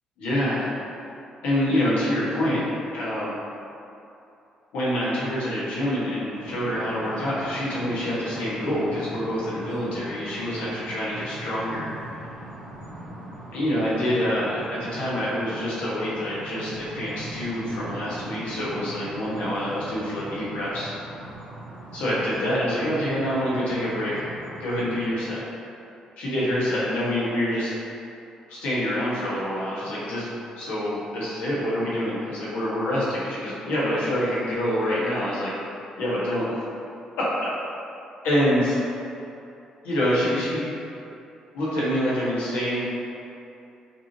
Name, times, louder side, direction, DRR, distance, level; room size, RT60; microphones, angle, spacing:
voice 1, 0.2-0.7 1.4-3.4 4.7-12.3 13.5-20.9 21.9-24.2 24.6-25.4 26.2-27.7 28.5-30.3 30.6-35.5 36.0-36.6 37.2-37.5 38.2-39.0 39.8-40.7 41.5-42.8, equal, 85° left, -9 dB, 1.4 m, -26 dB
sound 1, 6.3-25.1, right 1 dB, 85° right, 1.1 m, -40 dB
5.9 x 3.0 x 2.9 m, 2.8 s
supercardioid pair, 65°, 2 cm